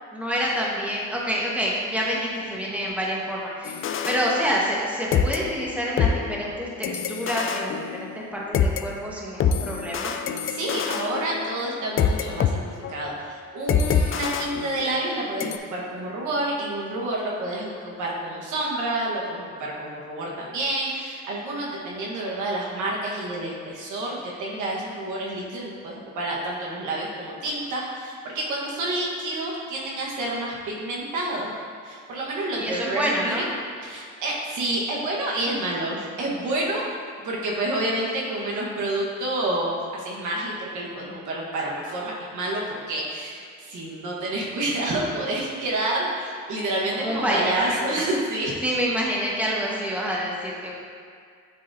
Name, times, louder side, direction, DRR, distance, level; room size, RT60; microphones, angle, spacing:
voice 1, 0.1-3.8 4.0-10.1 32.6-33.5 46.9-47.8 48.6-50.7, equal, 5° right, -4 dB, 1.3 m, -27 dB
sound 1, 3.6-4.9 5.1-8.8 9.4-12.5 12.8-13.1 13.7-15.1 15.4-15.6, left 7 dB, 45° left, 0.4 m, -26 dB
voice 2, 10.4-33.5 33.8-36.8 37.2-48.6, right 1 dB, 75° right, -4 dB, 1.4 m, -29 dB
9.6 x 3.8 x 2.7 m, 2.2 s
cardioid pair, 90°, 30 cm